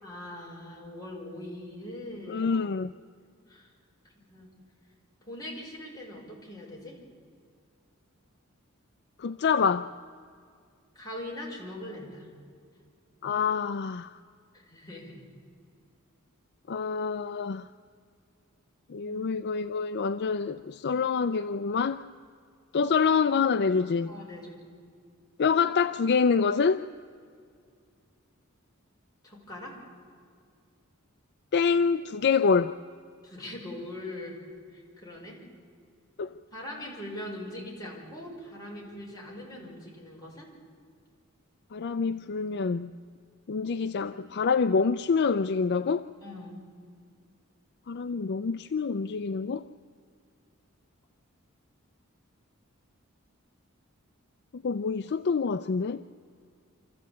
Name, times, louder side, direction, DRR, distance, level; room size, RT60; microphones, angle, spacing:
voice 1, 0.0-2.5 3.5-3.7 4.2-4.5 5.3-7.0 11.0-12.3 14.5-15.2 19.0-19.2 24.1-24.6 29.2-29.8 33.2-34.4 34.7-35.4 36.5-40.5 43.9-44.4 46.2-46.6, left 1 dB, 20° left, 5.5 m, -41 dB
voice 2, 2.3-2.9 9.2-9.9 13.2-14.2 16.7-17.6 18.9-22.0 22.7-24.1 25.4-26.8 31.5-32.8 36.2-36.3 41.7-42.9 43.5-46.1 47.9-49.7 54.5-56.0, left 5 dB, 50° left, 0.4 m, -26 dB
26.0 x 14.5 x 8.5 m
head